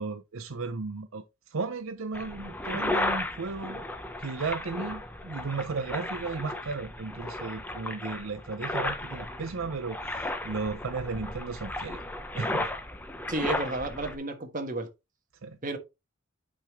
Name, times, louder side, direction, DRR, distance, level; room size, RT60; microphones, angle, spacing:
voice 1, 0.0-3.8 4.2-12.0 12.3-12.7 15.4-15.6, right 4 dB, 75° right, 0.7 m, -35 dB
sound 1, 2.1-14.2, left 1 dB, 10° left, 0.8 m, -34 dB
voice 2, 13.3-14.9 15.6-15.8, right 2 dB, 40° right, 1.4 m, -32 dB
8.7 x 5.1 x 3.1 m
head